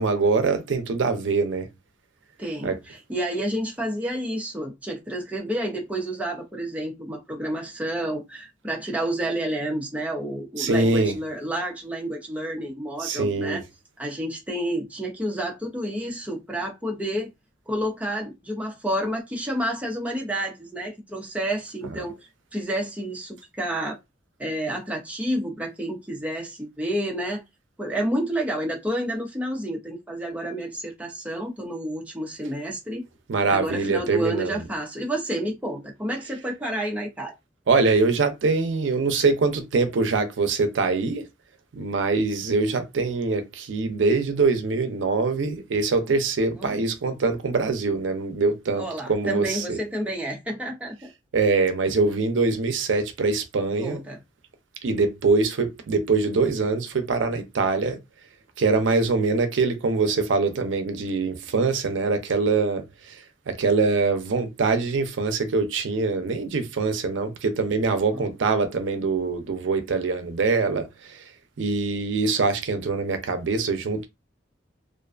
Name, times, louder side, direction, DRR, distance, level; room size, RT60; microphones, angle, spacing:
voice 1, 0.0-1.7 2.6-2.8 10.6-11.1 13.0-13.6 33.3-34.6 37.7-41.2 41.7-49.8 51.3-54.0 54.8-58.0 58.6-63.2 63.5-71.2 71.6-74.1, right 4 dB, 90° right, 0.5 m, -23 dB
voice 2, 2.4-13.6 14.0-17.3 17.7-22.2 22.5-24.0 24.4-27.4 27.8-33.0 33.5-37.3 46.6-46.8 48.8-51.1 53.8-54.2 68.1-68.2, right 1 dB, 10° right, 0.6 m, -30 dB
2.5 x 2.3 x 2.4 m
head